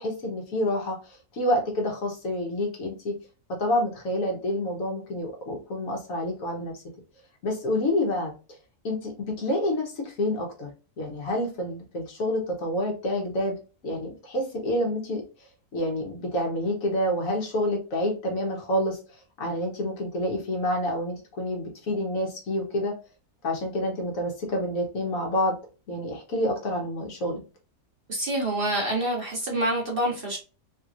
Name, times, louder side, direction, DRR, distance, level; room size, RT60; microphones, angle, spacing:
voice 1, 0.0-3.1 3.5-6.7 7.4-8.3 8.8-10.7 11.0-13.6 13.8-15.2 15.7-19.0 19.4-23.0 23.4-25.6 25.9-27.4, left 1 dB, 65° left, 1 dB, 1.4 m, -28 dB
voice 2, 28.1-30.4, right 1 dB, 40° right, -2 dB, 1.1 m, -27 dB
3.4 x 2.9 x 2.4 m, 0.33 s
omnidirectional pair, 1.6 m